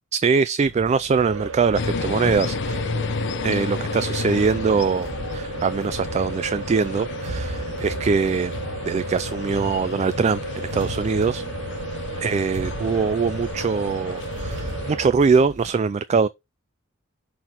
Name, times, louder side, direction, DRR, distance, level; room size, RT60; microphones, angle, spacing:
voice 1, 0.1-2.8 3.4-8.6 8.8-11.4 12.2-16.3, right 5 dB, 35° right, 0.3 m, -22 dB
sound 1, 0.6-15.7, right 2 dB, 65° right, 2.0 m, -38 dB
sound 2, 1.1-15.1, right 3 dB, 85° right, 1.4 m, -34 dB
sound 3, 1.7-15.0, left 4 dB, 60° left, 0.6 m, -32 dB
6.3 x 4.1 x 5.7 m
head